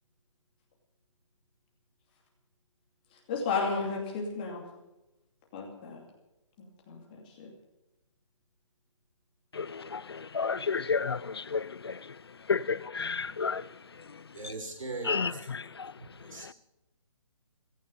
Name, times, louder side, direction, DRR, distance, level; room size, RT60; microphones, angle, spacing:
voice 1, 3.3-4.6 5.5-6.0 6.6-7.5 12.6-13.2, left 4 dB, 15° left, 2.5 m, -34 dB
voice 2, 9.5-12.0 12.5-13.7 15.1-15.3 15.8-15.9, left 5 dB, 50° left, 0.5 m, -31 dB
voice 3, 14.3-15.5 16.0-16.5, right 3 dB, 75° right, 5.9 m, -40 dB
16.5 x 15.5 x 5.3 m
hypercardioid pair, 175°, 17 cm